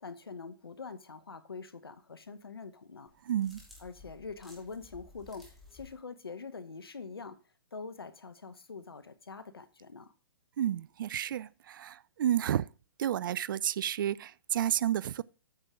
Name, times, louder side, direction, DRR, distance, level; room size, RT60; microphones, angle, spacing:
voice 1, 0.0-3.1 3.8-7.4 7.7-10.1, left 4 dB, 90° left, 1.0 m, -44 dB
sound 1, 3.1-6.0, left 3 dB, ahead, 3.0 m, -55 dB
voice 2, 3.2-3.6 10.6-12.7 13.0-15.2, right 11 dB, 60° right, 0.4 m, -31 dB
8.8 x 7.3 x 3.7 m
hypercardioid pair, 125°, 12 cm